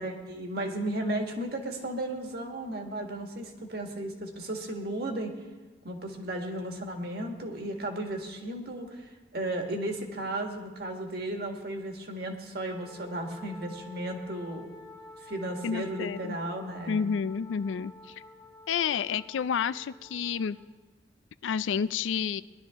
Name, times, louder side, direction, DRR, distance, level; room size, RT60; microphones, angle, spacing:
voice 1, 0.0-5.3 5.8-14.7 15.2-17.1, right 1 dB, 55° right, 3 dB, 1.7 m, -34 dB
Wind instrument woodwind instrument, 12.7-20.7, left 2 dB, 15° left, 0.9 m, -50 dB
voice 2, 15.6-16.4 16.9-18.1 18.7-20.6 21.4-22.4, left 7 dB, 85° left, 16 dB, 0.4 m, -30 dB
19.5 x 11.5 x 3.6 m, 1.2 s
head